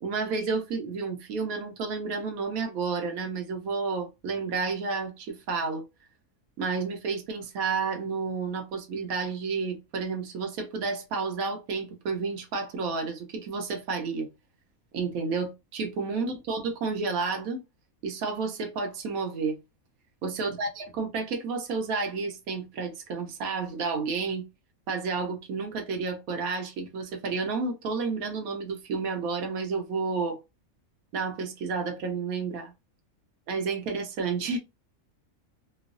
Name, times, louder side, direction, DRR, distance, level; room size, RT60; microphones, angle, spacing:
voice 1, 0.0-5.8 6.6-14.3 14.9-17.6 18.0-19.6 20.2-24.4 24.9-30.4 31.1-32.7 33.5-34.6, right 4 dB, 80° right, 1.1 m, -31 dB
3.0 x 2.0 x 2.4 m
omnidirectional pair, 1.5 m